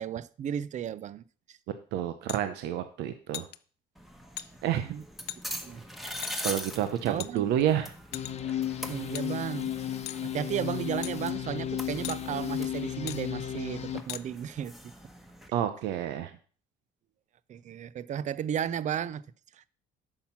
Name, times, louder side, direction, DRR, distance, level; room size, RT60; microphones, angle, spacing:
voice 1, 0.0-1.6 4.8-5.0 5.6-5.8 7.0-7.5 8.9-9.7 10.2-14.9 17.5-19.2 19.5-19.7, right 9 dB, 45° right, 0.5 m, -34 dB
voice 2, 1.9-3.5 4.6-4.9 6.4-7.9 15.5-16.3, right 11 dB, 90° right, 0.8 m, -29 dB
sound 1, 2.3-2.4 3.3-3.6 4.4-4.5 5.3-5.4 6.2-6.3 7.2-7.6 8.1-8.5 9.1-9.3 10.1-10.2 11.0-11.1 12.0-12.2 13.1-13.2 14.1-14.2, left 16 dB, 75° left, 0.5 m, -38 dB
sound 2, 3.9-15.5, equal, ahead, 1.2 m, -43 dB
sound 3, 8.1-14.0, left 10 dB, 40° left, 0.8 m, -34 dB
8.8 x 5.8 x 5.8 m
cardioid pair, 110°, 17 cm